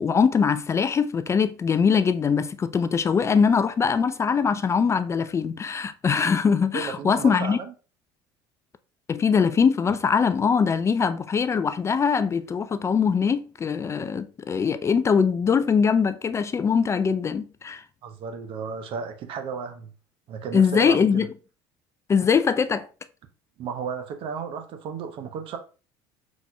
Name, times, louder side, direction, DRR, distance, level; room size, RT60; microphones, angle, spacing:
voice 1, 0.0-7.6 9.1-17.8 20.5-21.3 22.1-22.9, left 6 dB, 25° left, 0.3 m, -22 dB
voice 2, 6.7-7.7 18.0-19.9 20.3-21.3 23.6-25.6, right 6 dB, 55° right, 0.7 m, -33 dB
4.6 x 4.1 x 2.2 m
hypercardioid pair, 75°, 11 cm